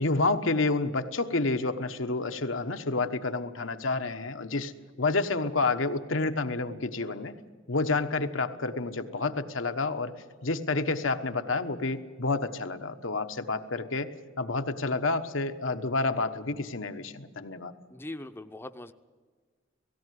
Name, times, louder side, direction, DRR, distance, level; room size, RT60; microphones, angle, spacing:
voice 1, 0.0-4.7 5.0-7.3 7.7-10.1 10.4-17.7, left 3 dB, 90° left, 7 dB, 1.2 m, -29 dB
voice 2, 17.9-18.9, left 1 dB, 10° left, 8 dB, 0.6 m, -41 dB
17.5 x 17.0 x 9.4 m, 1.5 s
head